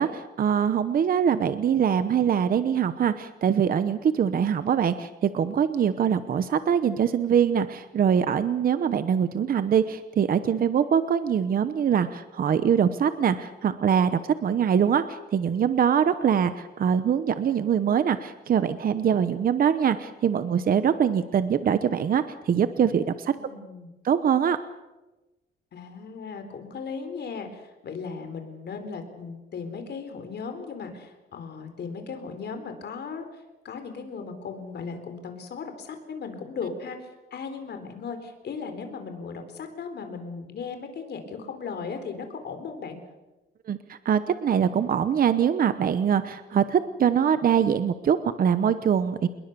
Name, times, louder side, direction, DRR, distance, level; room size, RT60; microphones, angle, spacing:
voice 1, 0.0-23.4 24.0-24.6 43.7-49.3, right 8 dB, 45° right, 12 dB, 0.9 m, -23 dB
voice 2, 23.4-23.9 25.7-43.0, left 5 dB, 60° left, 7 dB, 4.0 m, -37 dB
27.0 x 21.5 x 6.8 m, 1.1 s
wide cardioid pair, 170°, 20 cm